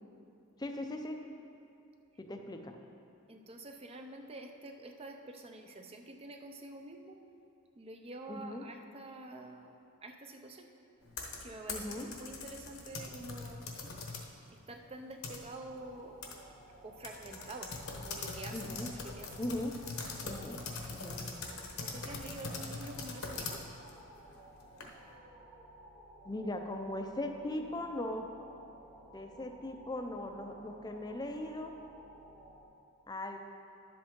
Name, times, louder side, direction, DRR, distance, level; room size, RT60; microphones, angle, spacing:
voice 1, 0.6-1.3 2.2-2.8 8.3-8.6 11.7-12.1 18.5-18.9 19.4-19.7 20.2-20.6 20.9-21.4 26.2-28.3 29.1-31.7 33.1-33.4, left 1 dB, 20° left, 4 dB, 0.5 m, -39 dB
voice 2, 3.3-7.2 7.8-10.7 11.4-13.6 14.5-16.2 16.8-18.7 19.0-19.3 21.8-23.6, right 2 dB, 25° right, 4 dB, 0.5 m, -47 dB
sound 1, 11.0-14.3 14.7-15.8 16.2-16.4 16.6-16.7 17.0-25.1, left 4 dB, 65° left, 1.0 m, -42 dB
sound 2, 15.7-32.6, right 1 dB, 75° right, 1.8 m, -56 dB
11.0 x 7.7 x 3.7 m, 2.6 s
head